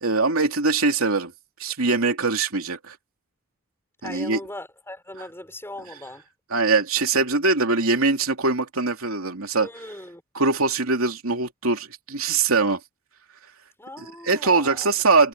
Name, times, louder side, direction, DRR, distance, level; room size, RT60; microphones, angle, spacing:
voice 1, 0.0-1.3 1.6-2.9 4.0-4.4 6.5-9.7 10.3-12.8 14.0-15.3, right 3 dB, 75° right, 2.9 m, -22 dB
voice 2, 4.0-6.2 9.6-10.2 13.8-14.9, left 1 dB, 10° left, 6.1 m, -39 dB
head